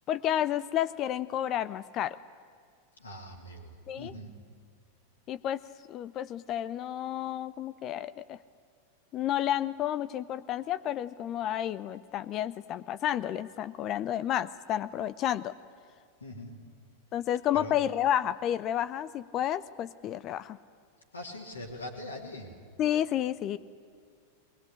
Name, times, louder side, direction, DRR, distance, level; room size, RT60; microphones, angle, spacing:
voice 1, 0.1-2.2 3.9-4.1 5.3-5.6 5.9-8.4 9.1-15.5 17.1-20.6 22.8-23.6, left 11 dB, 35° left, 16 dB, 0.6 m, -31 dB
voice 2, 3.0-4.3 16.2-16.5 17.5-17.7 21.1-22.5, left 1 dB, 80° left, -2 dB, 3.0 m, -42 dB
22.0 x 20.5 x 9.9 m, 2.2 s
figure-of-eight pair, 90°, 0 cm